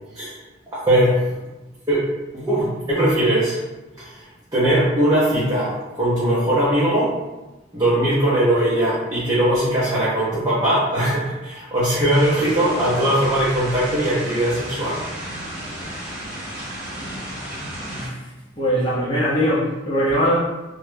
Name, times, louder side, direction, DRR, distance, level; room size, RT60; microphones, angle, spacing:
voice 1, 0.7-1.2 1.9-2.0 2.3-3.6 4.0-4.2 4.5-7.2 7.7-15.0, right 1 dB, 20° right, -9 dB, 0.5 m, -20 dB
sound 1, 12.1-18.1, right 1 dB, 40° right, 1.0 m, -33 dB
voice 2, 17.9-18.2 18.6-20.4, equal, 25° left, -8 dB, 0.6 m, -21 dB
2.2 x 2.1 x 3.2 m, 1.1 s
head